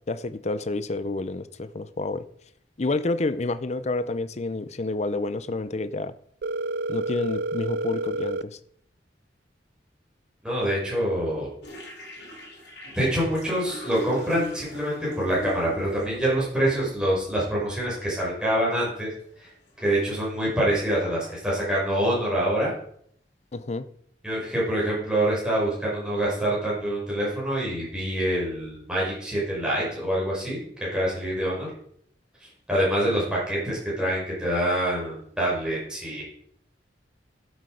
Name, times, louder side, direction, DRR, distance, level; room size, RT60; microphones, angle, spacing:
voice 1, 0.1-2.3 2.8-6.1 6.9-8.6 23.5-23.9, left 2 dB, 40° left, 0.6 m, -29 dB
Telephone, 6.4-8.4, right 2 dB, 65° right, 0.4 m, -29 dB
voice 2, 10.4-11.5 12.8-19.1 19.4-19.5 19.8-22.7 24.2-30.6 30.9-31.7 32.4-36.2, right 1 dB, 5° right, 5.7 m, -26 dB
sound 1, 11.6-16.2 17.2-17.3 17.7-17.8 18.1-18.5 18.9-19.3 19.7-22.0, left 1 dB, 65° left, 3.5 m, -40 dB
12.0 x 8.0 x 5.0 m
head